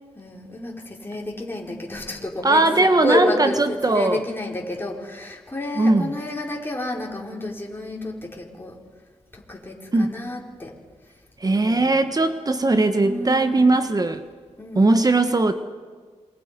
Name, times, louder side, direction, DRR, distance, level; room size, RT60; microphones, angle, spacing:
voice 1, 0.2-8.7 9.3-10.7 11.4-12.0 13.0-13.7 14.6-14.9, left 1 dB, 20° left, -2 dB, 5.0 m, -30 dB
voice 2, 2.4-4.2 5.8-6.1 9.9-10.1 11.4-14.2 14.7-15.5, right 2 dB, 30° right, 9 dB, 1.3 m, -19 dB
27.5 x 23.5 x 5.4 m, 1.5 s
cardioid pair, 70°, 12 cm